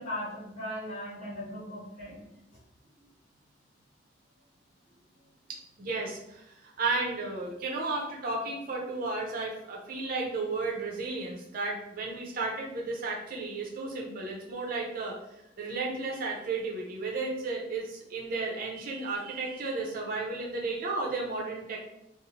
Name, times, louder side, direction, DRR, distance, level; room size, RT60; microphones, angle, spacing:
voice 1, 0.0-2.2, left 1 dB, 45° left, -8 dB, 1.2 m, -38 dB
voice 2, 5.5-15.2 15.6-21.8, right 3 dB, 50° right, -2 dB, 0.6 m, -33 dB
2.7 x 2.0 x 2.9 m, 0.84 s
head